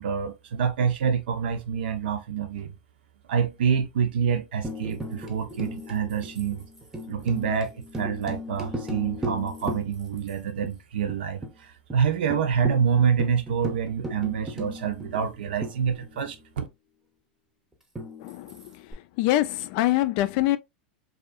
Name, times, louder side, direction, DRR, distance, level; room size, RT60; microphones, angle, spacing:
voice 1, 0.0-2.7 3.3-6.7 7.1-11.4 11.9-16.7, right 7 dB, 75° right, 0.7 m, -26 dB
Tambourine, 4.6-10.3 10.6-10.7 11.1-11.6 11.9-12.0 12.3-16.4 18.0-18.9, equal, 5° right, 0.7 m, -37 dB
voice 2, 18.2-18.8 19.2-20.6, left 15 dB, 55° left, 0.3 m, -24 dB
2.6 x 2.4 x 2.4 m
hypercardioid pair, 120°, 5 cm